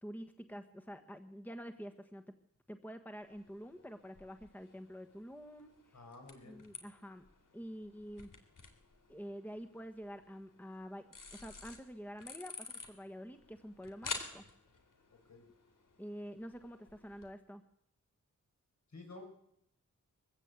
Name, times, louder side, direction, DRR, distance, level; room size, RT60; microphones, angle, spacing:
voice 1, 0.0-2.3 2.7-6.0 6.4-7.2 7.5-8.3 9.1-14.4 16.0-17.6, equal, 5° left, 7 dB, 1.4 m, -48 dB
sound 1, 3.2-17.3, left 4 dB, 85° left, 3.5 m, -51 dB
voice 2, 5.9-6.6 15.3-15.4 18.9-19.2, left 2 dB, 65° left, 3 dB, 6.4 m, -52 dB
23.0 x 15.5 x 8.4 m, 0.75 s
wide cardioid pair, 115°, 31 cm